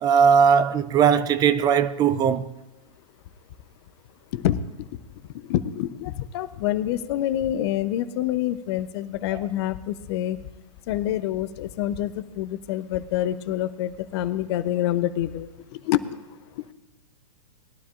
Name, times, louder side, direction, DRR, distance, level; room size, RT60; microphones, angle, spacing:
voice 1, 0.0-2.5 9.3-9.4, right 7 dB, 20° right, 0.4 m, -19 dB
voice 2, 4.3-4.9 5.3-10.4 10.9-16.0 16.6-16.7, left 12 dB, 50° left, 0.7 m, -27 dB
20.5 x 12.0 x 2.5 m
hypercardioid pair, 115°, 18 cm